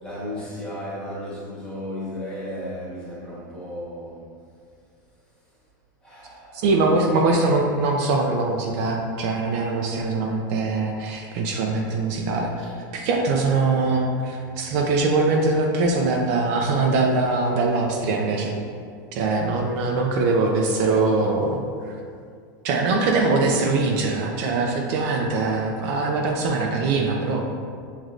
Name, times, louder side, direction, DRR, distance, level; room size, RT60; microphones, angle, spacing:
voice 1, 0.0-4.2 6.0-6.8 12.6-12.7, left 1 dB, 10° left, -7 dB, 1.1 m, -34 dB
voice 2, 6.6-12.5 12.9-18.5 19.1-21.6 21.9-22.0 22.6-27.4, right 3 dB, 50° right, 1 dB, 0.5 m, -22 dB
6.3 x 3.1 x 2.4 m, 2.2 s
supercardioid pair, 155°, 11 cm